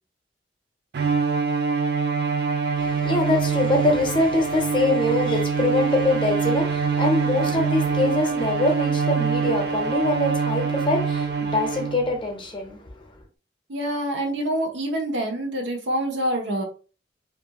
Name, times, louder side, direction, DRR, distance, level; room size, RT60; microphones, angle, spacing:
Bowed string instrument, 0.9-12.2, right 5 dB, 60° right, 0.3 m, -24 dB
voice 1, 2.8-12.9, left 2 dB, 30° left, 0.6 m, -24 dB
voice 2, 13.7-16.6, right 1 dB, 85° right, 0.8 m, -26 dB
2.4 x 2.3 x 2.8 m
head